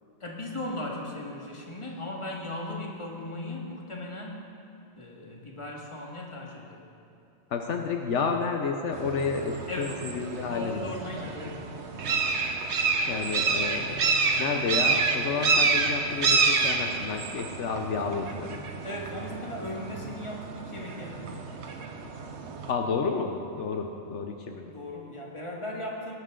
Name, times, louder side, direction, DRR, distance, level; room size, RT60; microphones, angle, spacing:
voice 1, 0.2-4.4 5.0-6.8 9.7-10.0 10.5-12.1 18.8-21.7 24.6-26.1, left 1 dB, 25° left, -1 dB, 1.8 m, -37 dB
voice 2, 7.5-10.9 11.3-11.4 13.1-18.6 22.7-24.7, left 5 dB, 75° left, 4 dB, 1.1 m, -31 dB
sound 1, 8.9-22.7, right 4 dB, 65° right, 1.2 m, -28 dB
18.5 x 12.0 x 3.8 m, 2.9 s
omnidirectional pair, 1.2 m